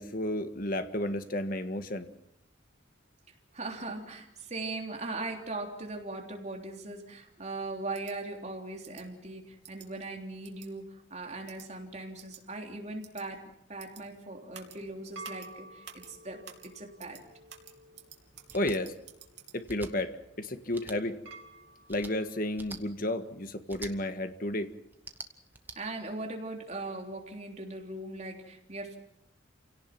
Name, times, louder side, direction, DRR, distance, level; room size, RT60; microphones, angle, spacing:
voice 1, 0.0-2.1 18.5-18.9 19.5-21.2 21.9-24.7, left 1 dB, 45° left, 8 dB, 1.7 m, -32 dB
voice 2, 3.5-17.2 25.8-29.0, right 2 dB, 35° right, 2 dB, 3.5 m, -39 dB
sound 1, 7.9-8.1 8.8-9.0 9.6-9.9 10.4-10.7 11.5-11.7 12.2-12.4 13.0-13.2 13.8-14.0 14.5-14.8 15.2-15.5 15.8-16.1 16.4-16.7 17.0-17.2 17.5-19.6, right 9 dB, 65° right, 3.1 m, -50 dB
sound 2, 14.6-23.0, right 1 dB, 90° right, 2.3 m, -53 dB
sound 3, 18.5-18.8 19.6-19.9 20.7-21.0 21.9-22.1 22.6-22.8 23.7-23.9 24.9-25.8, right 2 dB, 10° right, 1.3 m, -45 dB
29.0 x 17.5 x 6.0 m, 0.79 s
head